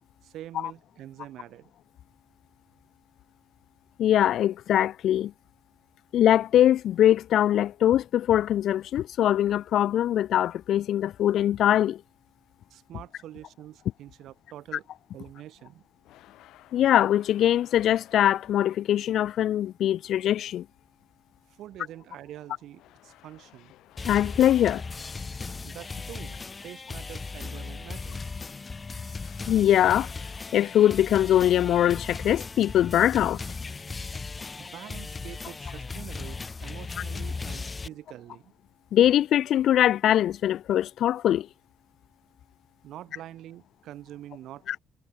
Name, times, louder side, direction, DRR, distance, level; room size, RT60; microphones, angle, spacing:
voice 1, 0.2-1.7 12.7-14.8 15.1-15.8 21.6-23.7 25.6-26.4 26.6-28.3 34.6-38.5 42.8-44.8, right 13 dB, 75° right, 3.9 m, -45 dB
voice 2, 4.0-5.3 6.1-12.0 16.7-20.6 24.1-24.8 29.5-30.1 30.5-33.4 38.9-41.5 44.7-44.8, left 11 dB, 70° left, 0.3 m, -22 dB
sound 1, 16.0-19.0 22.7-25.6 29.2-32.3, left 15 dB, 85° left, 4.1 m, -56 dB
sound 2, 24.0-37.9, left 4 dB, 25° left, 1.6 m, -37 dB
cardioid pair, 100°, 0 cm